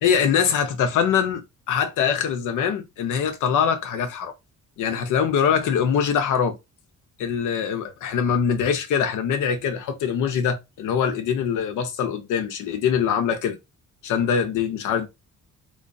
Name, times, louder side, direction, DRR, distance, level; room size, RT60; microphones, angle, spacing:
voice 1, 0.0-4.3 4.8-6.6 7.2-13.6 14.0-15.1, left 7 dB, 85° left, 0.8 m, -23 dB
3.2 x 3.1 x 2.7 m
cardioid pair, 90°, 30 cm